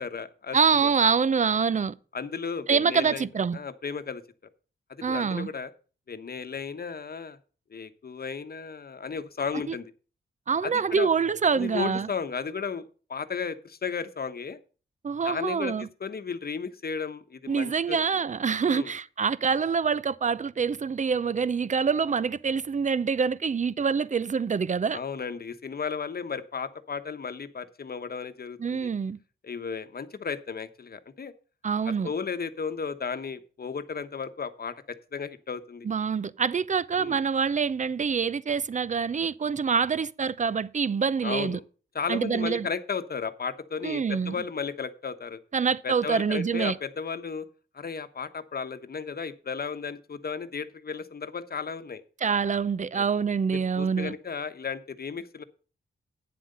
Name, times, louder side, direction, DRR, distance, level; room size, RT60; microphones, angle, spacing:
voice 1, 0.0-0.9 2.1-3.3 3.5-4.2 4.9-5.7 6.1-7.4 7.7-9.9 10.6-11.1 11.5-14.6 15.2-18.0 18.6-18.9 24.9-28.9 29.4-31.3 31.8-35.9 37.0-37.2 41.2-41.6 41.9-45.4 45.8-47.5 47.7-52.0 52.9-53.0 53.5-55.4, left 5 dB, 50° left, 1.1 m, -34 dB
voice 2, 0.5-1.9 2.7-3.6 5.0-5.5 9.7-9.8 10.5-12.1 15.0-15.9 17.5-25.0 28.6-29.2 31.6-32.1 35.8-41.6 42.1-42.7 43.8-44.3 45.5-46.7 52.2-54.1, right 6 dB, 35° right, 0.6 m, -26 dB
9.5 x 7.7 x 5.4 m
cardioid pair, 65°, 21 cm